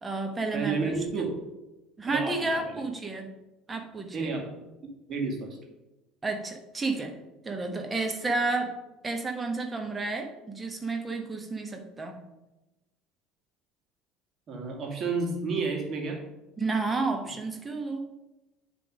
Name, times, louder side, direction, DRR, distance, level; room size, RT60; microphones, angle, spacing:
voice 1, 0.0-1.3 2.0-3.3 3.7-4.3 6.2-7.1 7.4-8.7 9.0-12.2 16.6-18.1, right 3 dB, 20° right, 4 dB, 1.2 m, -31 dB
voice 2, 0.5-1.3 2.1-2.8 4.1-4.5 5.1-5.6 14.5-16.2, right 4 dB, 35° right, 0 dB, 2.0 m, -31 dB
9.7 x 3.5 x 5.3 m, 1.0 s
figure-of-eight pair, 65°, 0 cm